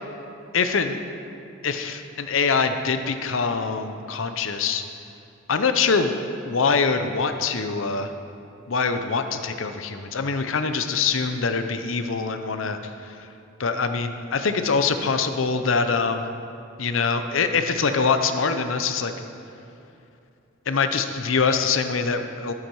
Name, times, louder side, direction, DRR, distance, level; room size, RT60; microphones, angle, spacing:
voice 1, 0.5-1.0 1.6-4.8 5.5-6.1 6.5-8.1 8.7-12.8 13.6-16.2 16.8-19.1 20.7-22.5, left 5 dB, 80° left, 8 dB, 0.7 m, -24 dB
12.0 x 8.6 x 4.7 m, 2.7 s
head